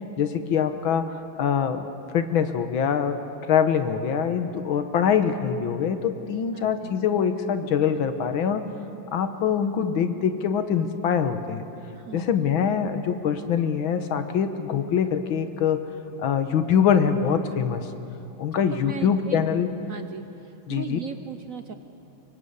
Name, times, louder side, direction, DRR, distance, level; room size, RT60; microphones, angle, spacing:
voice 1, 0.2-8.6 9.1-11.7 12.1-15.8 16.2-17.9 18.4-19.7 20.7-21.0, left 7 dB, 80° left, 9 dB, 2.0 m, -24 dB
voice 2, 6.5-6.9 12.0-12.3 18.7-19.4 19.9-21.7, right 7 dB, 60° right, 8 dB, 0.9 m, -38 dB
24.5 x 23.0 x 8.3 m, 2.9 s
omnidirectional pair, 2.2 m